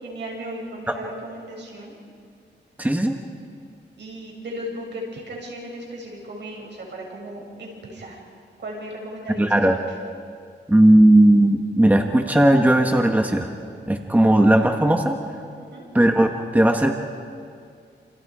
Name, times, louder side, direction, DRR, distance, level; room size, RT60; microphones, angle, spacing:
voice 1, 0.0-2.0 4.0-8.2 8.6-9.8 15.6-15.8, equal, 70° right, -1 dB, 7.1 m, -36 dB
voice 2, 2.8-3.2 9.4-9.8 10.7-13.5 13.9-15.2 15.9-17.0, right 1 dB, 10° right, 4 dB, 1.5 m, -17 dB
28.5 x 28.0 x 5.0 m, 2.3 s
wide cardioid pair, 95°, 19 cm